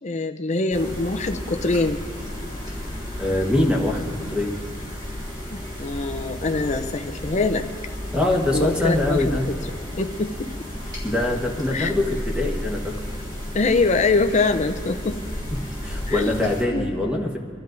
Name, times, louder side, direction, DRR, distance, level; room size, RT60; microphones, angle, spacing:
voice 1, 0.0-2.0 5.5-7.6 8.5-9.4 10.0-10.5 11.7-11.9 13.5-15.2 16.1-16.9, left 3 dB, 35° left, 6 dB, 0.6 m, -24 dB
sound 1, 0.7-16.6, equal, 20° right, 3.3 m, -33 dB
voice 2, 3.2-4.5 8.1-9.5 11.0-13.0 15.8-17.4, left 1 dB, 5° right, 0 dB, 1.3 m, -23 dB
26.5 x 12.5 x 2.6 m, 2.1 s
head